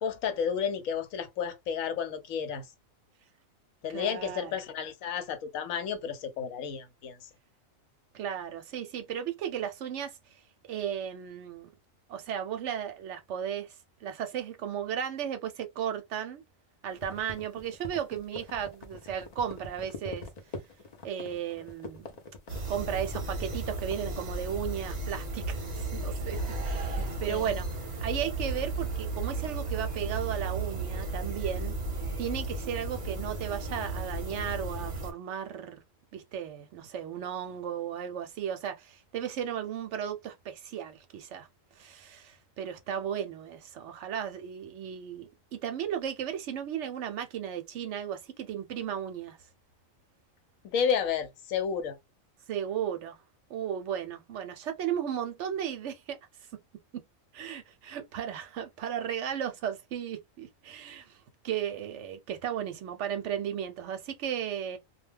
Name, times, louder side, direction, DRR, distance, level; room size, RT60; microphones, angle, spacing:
voice 1, 0.0-2.6 3.8-7.2 27.0-27.5 50.6-52.0, left 7 dB, 80° left, 1.1 m, -32 dB
voice 2, 3.9-4.5 8.1-10.1 10.7-11.7 12.1-13.7 14.0-16.4 16.8-20.2 21.0-22.1 22.7-27.7 28.0-31.7 32.2-35.8 36.1-41.5 41.8-49.4 52.5-53.2 53.5-56.2 57.3-61.2 61.4-64.8, right 9 dB, 70° right, 0.8 m, -35 dB
sound 1, 16.9-24.3, left 2 dB, 50° left, 0.5 m, -44 dB
sound 2, 22.5-35.1, right 2 dB, 40° right, 0.7 m, -34 dB
2.3 x 2.2 x 3.2 m
omnidirectional pair, 1.4 m